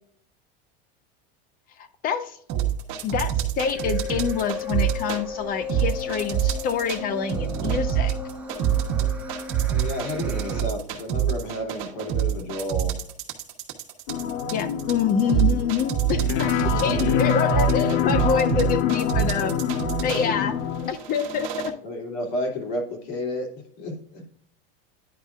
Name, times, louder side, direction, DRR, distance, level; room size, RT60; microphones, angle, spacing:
voice 1, 2.0-2.4 3.0-8.1 14.5-19.5 20.0-20.5 20.9-21.7, left 7 dB, 30° left, 11 dB, 0.5 m, -26 dB
sound 1, 2.5-5.2 5.7-7.0 7.3-20.3 20.9-21.7, right 11 dB, 50° right, 1.2 m, -25 dB
sound 2, 3.6-10.6, left 5 dB, 5° right, 1.4 m, -35 dB
voice 2, 9.7-13.0 16.6-17.3 20.0-20.4 21.8-23.5 23.8-24.2, left 1 dB, 60° left, 0 dB, 2.8 m, -31 dB
sound 3, 14.1-20.9, left 8 dB, 85° left, 0.9 m, -26 dB
10.0 x 5.3 x 2.4 m, 0.64 s
supercardioid pair, 150°, 30 cm